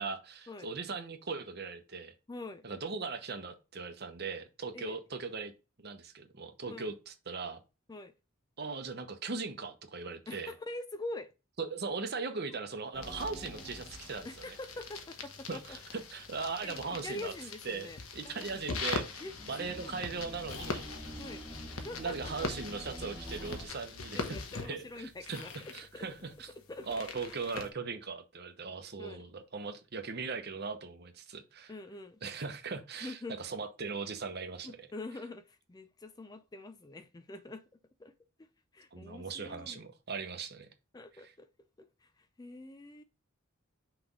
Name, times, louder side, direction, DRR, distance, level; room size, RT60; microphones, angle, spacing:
voice 1, 0.0-2.1 2.6-5.5 5.8-7.6 8.6-10.5 11.6-14.3 15.5-17.3 17.6-19.2 19.5-20.8 22.0-24.4 24.7-25.4 25.7-26.5 26.9-31.7 32.2-34.7 38.9-40.7 41.2-41.3, right 4 dB, 50° right, 0.9 m, -39 dB
voice 2, 2.3-2.7 4.7-5.0 6.7-6.9 7.9-8.1 10.3-11.3 14.2-16.0 16.6-18.7 19.2-20.0 21.2-21.4 21.7-22.5 24.1-27.2 29.0-29.3 31.7-32.2 33.0-33.4 34.6-38.1 38.4-39.8 40.9-43.0, left 2 dB, 20° left, 0.4 m, -45 dB
sound 1, 12.9-14.9 15.2-15.3 16.3-16.5 18.6-23.7, equal, ahead, 1.2 m, -47 dB
sound 2, 13.0-27.7, left 4 dB, 85° left, 1.1 m, -42 dB
zombie groans, 20.4-21.6 22.3-22.5 23.2-23.7 24.1-25.0 25.3-25.9, left 4 dB, 60° left, 0.8 m, -52 dB
6.1 x 3.3 x 5.2 m
head